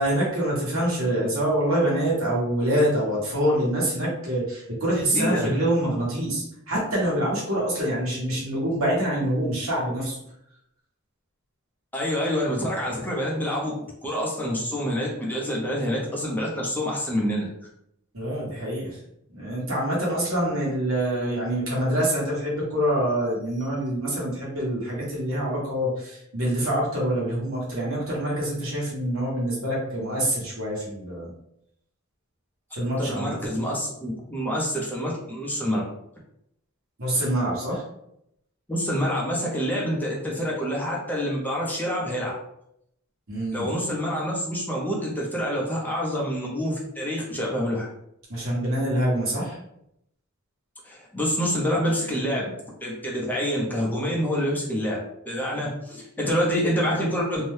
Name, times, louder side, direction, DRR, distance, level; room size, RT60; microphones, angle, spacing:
voice 1, 0.0-10.2 18.1-19.0 19.3-31.3 32.7-33.4 37.0-37.8 43.3-43.7 48.3-49.6, right 1 dB, 75° right, -5 dB, 1.2 m, -25 dB
voice 2, 5.1-5.5 11.9-13.7 14.0-17.4 33.0-35.8 38.7-42.3 43.5-47.9 50.8-52.5 52.8-55.0 55.3-57.4, equal, 10° left, -4 dB, 0.6 m, -27 dB
2.6 x 2.1 x 3.2 m, 0.77 s
head